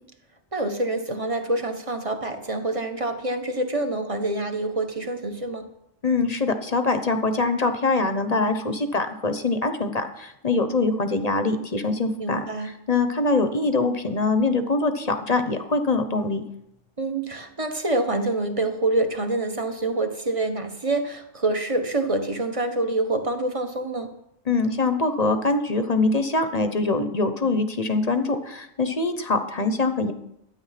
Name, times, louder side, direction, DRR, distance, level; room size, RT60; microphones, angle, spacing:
voice 1, 0.5-5.7 12.2-12.7 17.0-24.1, right 2 dB, 25° right, 6 dB, 1.2 m, -26 dB
voice 2, 6.0-12.4 12.9-16.4 24.5-30.1, left 3 dB, 35° left, 8 dB, 0.9 m, -23 dB
12.5 x 9.6 x 5.9 m, 0.79 s
omnidirectional pair, 1.4 m